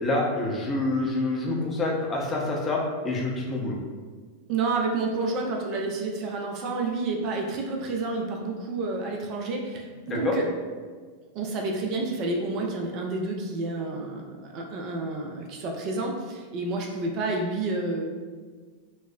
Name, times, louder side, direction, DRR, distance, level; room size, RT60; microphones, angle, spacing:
voice 1, 0.0-3.8 10.1-10.3, left 2 dB, 20° left, -2 dB, 0.6 m, -27 dB
voice 2, 4.5-10.5 11.3-18.0, right 3 dB, 40° right, 1 dB, 0.4 m, -29 dB
4.2 x 2.0 x 2.3 m, 1.5 s
figure-of-eight pair, 90°, 0 cm